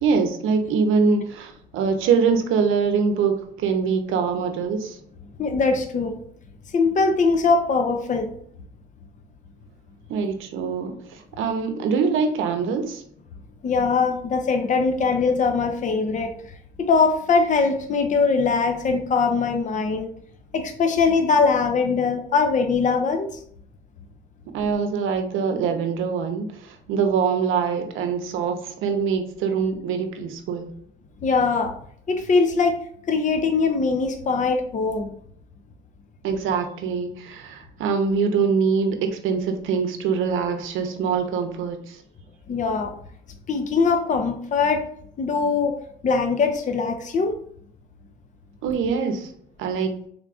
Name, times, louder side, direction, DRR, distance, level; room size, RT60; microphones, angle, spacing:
voice 1, 0.0-5.0 10.1-13.0 24.5-30.7 36.2-42.0 48.6-49.3 49.6-49.9, right 5 dB, 85° right, 6 dB, 0.7 m, -24 dB
voice 2, 5.4-6.2 6.7-8.3 13.6-16.3 16.8-20.1 20.5-23.4 31.2-31.7 32.1-32.8 33.1-35.1 42.5-42.9 43.5-44.9 45.2-45.8 46.0-47.4, left 4 dB, 40° left, 6 dB, 0.5 m, -21 dB
3.6 x 3.4 x 2.4 m, 0.65 s
cardioid pair, 90°, 20 cm